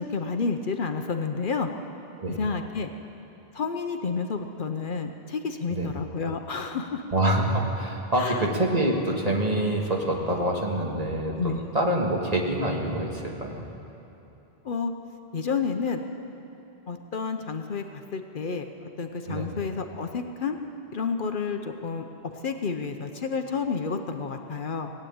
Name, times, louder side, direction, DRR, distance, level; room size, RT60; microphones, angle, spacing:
voice 1, 0.0-1.7 2.4-2.9 3.5-7.0 8.2-8.5 11.4-11.6 14.6-14.9 15.3-16.0 16.9-20.6 20.9-22.0 22.4-24.9, left 5 dB, 60° left, 6 dB, 0.9 m, -30 dB
voice 2, 7.1-13.7 19.3-19.5, right 1 dB, 40° right, -1 dB, 1.8 m, -26 dB
18.5 x 8.8 x 8.6 m, 2.9 s
omnidirectional pair, 1.0 m